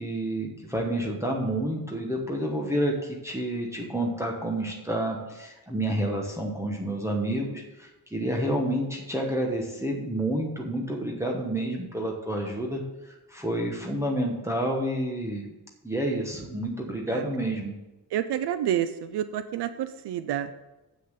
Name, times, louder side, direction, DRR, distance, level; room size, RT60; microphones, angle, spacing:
voice 1, 0.0-15.5 15.8-17.7, right 1 dB, 5° right, -1 dB, 1.1 m, -29 dB
voice 2, 18.1-20.5, right 10 dB, 90° right, 11 dB, 0.6 m, -29 dB
7.5 x 6.5 x 6.6 m, 1.0 s
wide cardioid pair, 160°, 39 cm